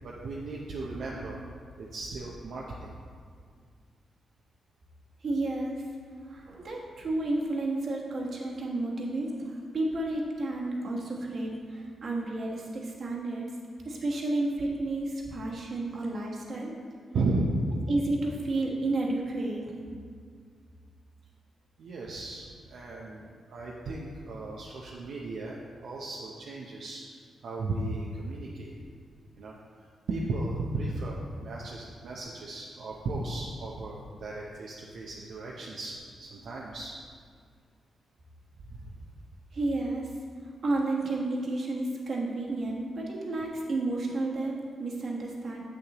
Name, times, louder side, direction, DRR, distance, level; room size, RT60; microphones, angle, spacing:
voice 1, 0.0-1.4 1.8-2.9 17.1-17.8 21.8-25.6 25.8-28.7 29.3-36.9 38.7-38.9, right 2 dB, 75° right, -4 dB, 0.7 m, -35 dB
voice 2, 5.2-5.8 6.3-13.5 13.8-16.7 17.9-19.6 39.5-40.1 40.6-45.6, right 2 dB, 60° right, -2 dB, 1.3 m, -31 dB
7.8 x 6.8 x 2.9 m, 2.1 s
cardioid pair, 90°, 0 cm